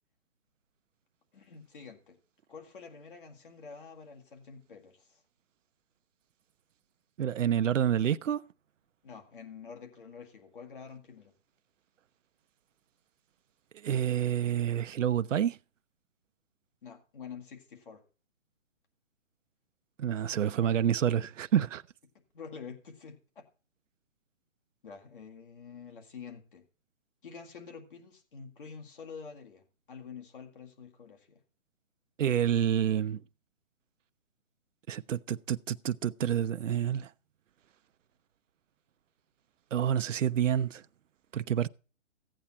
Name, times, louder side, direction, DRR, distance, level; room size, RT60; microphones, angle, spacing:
voice 1, 1.3-2.2 2.5-5.2 9.0-11.3 16.8-18.0 22.3-23.5 24.8-26.6 27.2-31.4, left 6 dB, 45° left, 2.0 m, -47 dB
voice 2, 7.2-8.4 13.8-15.6 20.0-21.8 32.2-33.2 34.9-37.1 39.7-40.8 41.3-41.7, right 9 dB, 80° right, 0.6 m, -28 dB
15.5 x 8.9 x 4.2 m
hypercardioid pair, 165°, 37 cm